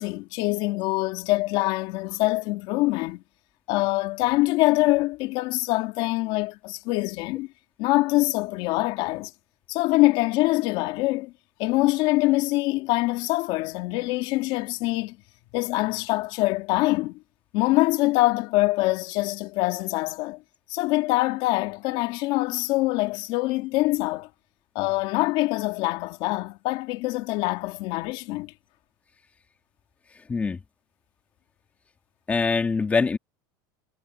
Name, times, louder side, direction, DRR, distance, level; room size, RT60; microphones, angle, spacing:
voice 1, 0.0-3.2 3.7-7.5 7.8-9.3 9.7-11.3 11.6-15.2 15.5-17.2 17.5-20.4 20.7-24.3 24.7-28.5, left 20 dB, 50° left, 2.7 m, -24 dB
voice 2, 32.3-33.2, left 4 dB, 10° left, 1.9 m, -23 dB
supercardioid pair, 160°, 11 cm